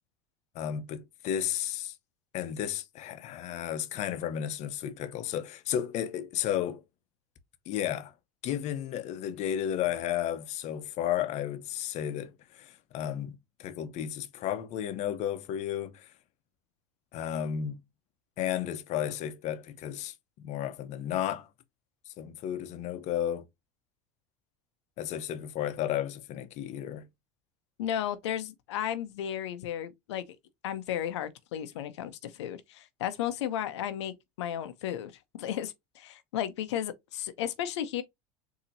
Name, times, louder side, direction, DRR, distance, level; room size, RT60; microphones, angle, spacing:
voice 1, 0.5-2.0 2.3-6.8 7.7-8.1 8.4-16.1 17.1-17.8 18.4-21.5 22.2-23.5 25.0-27.1, left 10 dB, 55° left, 0.7 m, -33 dB
voice 2, 27.8-30.2 30.6-35.1 35.4-38.0, left 10 dB, 90° left, 0.6 m, -34 dB
4.1 x 2.8 x 2.6 m
supercardioid pair, 100°, 14 cm